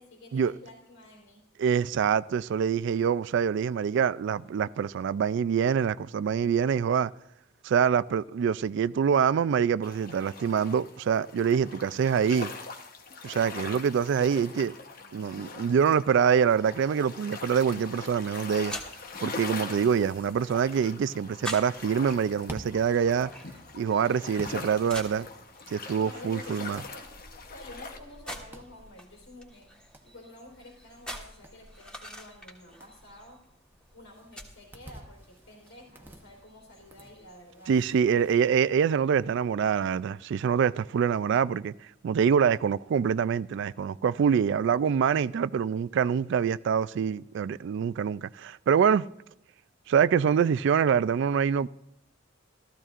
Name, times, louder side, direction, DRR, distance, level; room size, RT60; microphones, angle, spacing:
voice 1, 0.0-1.5 15.0-15.6 25.9-27.1 27.4-29.7 30.0-33.4 33.9-37.8, left 1 dB, 90° left, 3.6 m, -50 dB
voice 2, 1.6-7.1 7.6-12.5 13.2-14.7 15.1-18.7 19.2-23.3 23.7-25.3 25.7-26.8 37.7-41.7 42.0-49.0 49.9-51.7, right 7 dB, 60° right, 0.3 m, -25 dB
sound 1, 9.8-28.0, left 4 dB, 45° left, 1.0 m, -42 dB
sound 2, 17.5-37.4, equal, 5° left, 1.4 m, -47 dB
sound 3, 22.0-38.4, right 1 dB, 10° right, 0.9 m, -51 dB
15.0 x 14.0 x 2.5 m
head